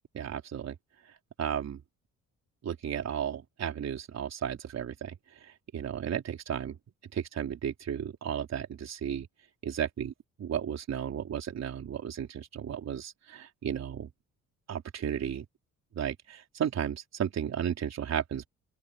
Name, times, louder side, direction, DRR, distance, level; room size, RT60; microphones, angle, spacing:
voice 1, 0.1-0.7 1.4-1.8 2.6-5.1 5.4-6.8 7.1-9.3 9.6-10.1 10.4-14.1 14.7-15.4 16.0-18.5, right 8 dB, 60° right, 4.3 m, -34 dB
open air
cardioid pair, 90°, 30 cm